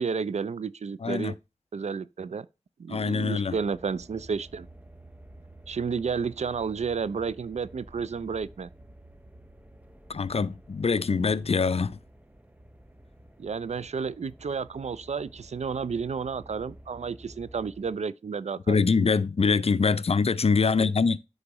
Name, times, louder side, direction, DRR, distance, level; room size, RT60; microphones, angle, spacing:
voice 1, 0.0-1.3 1.7-2.5 2.8-4.7 5.7-8.7 13.4-18.7 20.8-20.9, right 5 dB, 65° right, 0.4 m, -31 dB
voice 2, 1.0-1.3 2.9-3.6 10.1-12.0 18.7-21.2, left 4 dB, 55° left, 0.4 m, -24 dB
sound 1, 3.5-18.0, right 1 dB, 10° right, 0.7 m, -51 dB
9.6 x 3.9 x 3.0 m
wide cardioid pair, 45°, 12 cm